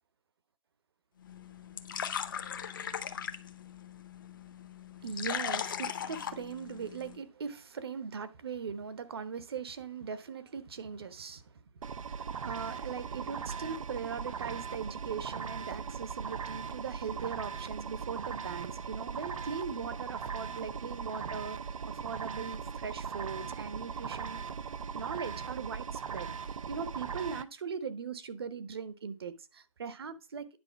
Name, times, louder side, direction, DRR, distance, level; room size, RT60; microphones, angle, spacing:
sound 1, 1.2-7.2, left 8 dB, 40° left, 0.7 m, -39 dB
voice 1, 5.0-11.6 12.1-21.6 21.9-24.4 24.9-26.3 26.7-30.6, right 6 dB, 50° right, 0.9 m, -40 dB
sound 2, 11.8-27.4, right 6 dB, 80° right, 0.7 m, -39 dB
9.8 x 3.9 x 5.7 m
hypercardioid pair, 175°, 17 cm